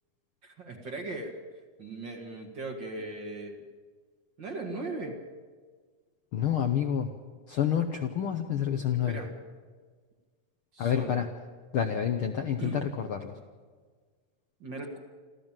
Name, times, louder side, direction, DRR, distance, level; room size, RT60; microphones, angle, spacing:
voice 1, 0.4-1.4 1.8-3.6 4.4-5.2 9.1-9.3 10.7-11.2 12.6-12.8 14.6-15.0, right 2 dB, 40° right, 3 dB, 2.2 m, -38 dB
voice 2, 6.3-7.1 7.5-9.2 10.8-11.3 11.7-13.4, left 9 dB, 65° left, 5 dB, 1.4 m, -28 dB
26.5 x 14.0 x 7.5 m, 1.6 s
omnidirectional pair, 3.5 m